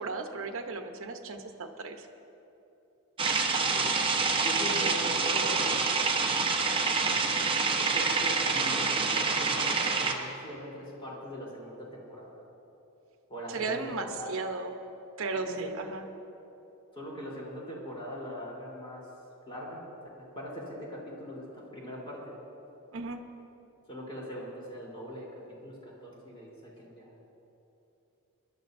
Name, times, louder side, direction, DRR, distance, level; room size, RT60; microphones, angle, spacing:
voice 1, 0.0-2.1 13.5-14.7 15.2-16.0 22.9-23.2, right 3 dB, 60° right, 5 dB, 1.0 m, -35 dB
sound 1, 3.2-10.1, right 4 dB, 25° right, 1.0 m, -27 dB
voice 2, 4.4-5.7 6.1-7.2 7.8-12.4 13.3-14.3 15.3-15.7 16.9-19.1 19.5-19.8 20.2-22.3 23.9-25.3 25.6-27.1, equal, 25° left, -5 dB, 3.7 m, -41 dB
25.5 x 12.0 x 2.7 m, 2.9 s
head